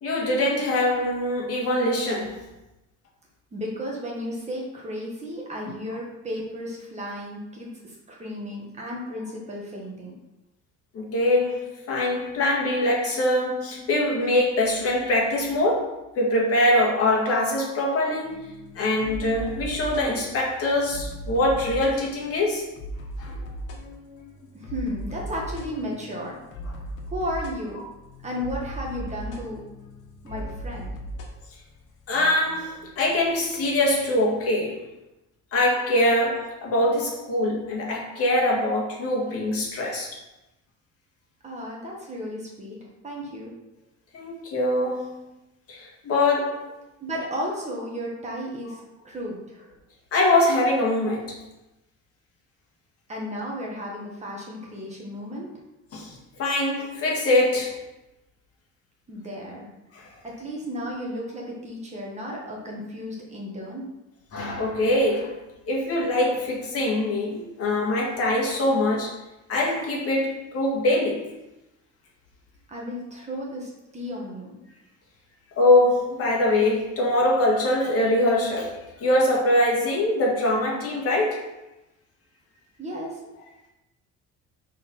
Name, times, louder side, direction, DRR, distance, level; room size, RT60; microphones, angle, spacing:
voice 1, 0.0-2.4 10.9-18.4 18.8-22.6 23.2-23.5 32.1-34.8 35.5-40.2 44.1-45.2 45.7-46.7 50.1-51.4 55.9-57.7 59.9-60.1 64.3-65.4 65.7-69.1 69.5-71.3 75.6-81.4, left 1 dB, 50° left, -2 dB, 1.8 m, -23 dB
voice 2, 3.5-10.1 24.5-26.4 27.1-27.8 28.2-29.6 30.2-30.9 41.4-42.8 43.0-43.5 47.0-49.7 53.1-55.5 59.1-59.7 60.2-63.9 72.7-74.6 82.8-83.2, equal, 20° right, -3 dB, 1.4 m, -34 dB
sound 1, 18.2-34.5, equal, 85° left, 1.4 m, -38 dB
6.3 x 4.2 x 5.4 m, 0.96 s
cardioid pair, 170°, 30 cm